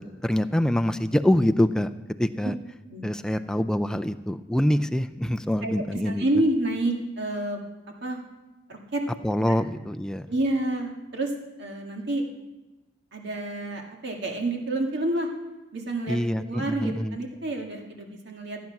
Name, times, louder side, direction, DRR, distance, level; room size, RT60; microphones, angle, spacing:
voice 1, 0.2-1.9 2.2-2.5 3.0-6.2 9.2-10.3 16.1-17.2, left 1 dB, 5° left, 9 dB, 0.4 m, -25 dB
voice 2, 2.9-3.4 5.6-7.6 8.0-8.2 8.7-9.0 10.3-11.3 11.6-12.2 13.1-15.3 15.7-18.7, right 1 dB, 60° right, 2 dB, 1.9 m, -29 dB
14.5 x 9.4 x 5.9 m, 1.1 s
head